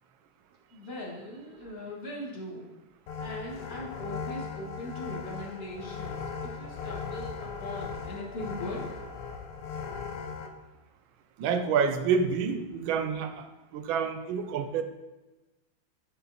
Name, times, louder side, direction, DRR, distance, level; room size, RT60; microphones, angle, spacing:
voice 1, 0.7-2.7 3.2-8.8, left 1 dB, 30° left, -4 dB, 1.6 m, -40 dB
sound 1, 3.1-10.5, left 5 dB, 85° left, 1.6 m, -38 dB
voice 2, 11.4-13.5 13.7-14.8, right 6 dB, 75° right, 9 dB, 1.3 m, -28 dB
9.9 x 3.9 x 4.0 m, 1.1 s
omnidirectional pair, 2.4 m